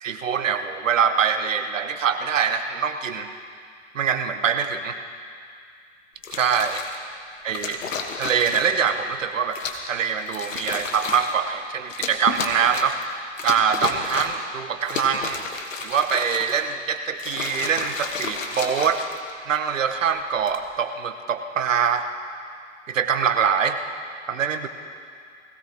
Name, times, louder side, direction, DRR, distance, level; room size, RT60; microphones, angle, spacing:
voice 1, 0.0-3.3 3.9-5.0 6.4-6.8 7.4-7.8 8.2-9.6 9.9-13.0 13.4-15.4 15.8-19.0 19.5-22.0 22.9-23.8 24.3-24.7, right 7 dB, 90° right, 8 dB, 1.1 m, -24 dB
sound 1, 6.2-7.0 7.5-8.9 9.5-9.9 10.3-11.4 11.9-13.0 13.4-14.5 14.8-16.7 17.1-19.5 20.3-20.6, left 5 dB, 85° left, 1.5 m, -32 dB
20.0 x 16.5 x 3.0 m, 2.2 s
hypercardioid pair, 110°, 37 cm